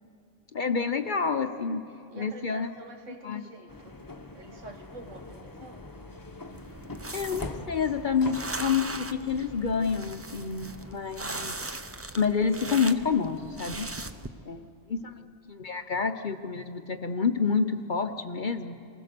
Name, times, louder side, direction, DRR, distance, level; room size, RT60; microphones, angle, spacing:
voice 1, 0.5-1.8 2.1-2.7 3.2-3.4 7.1-11.6 12.2-13.9 14.4-14.6 14.9-18.8, left 5 dB, 45° left, 8 dB, 0.8 m, -28 dB
voice 2, 2.1-4.0 4.3-5.9 15.2-15.3, right 2 dB, 75° right, 5 dB, 2.1 m, -47 dB
sound 1, 3.7-11.0, left 2 dB, 15° left, 1.0 m, -43 dB
sound 2, 6.5-14.3, right 2 dB, 20° right, 0.3 m, -39 dB
28.0 x 20.0 x 6.7 m, 2.5 s
omnidirectional pair, 1.3 m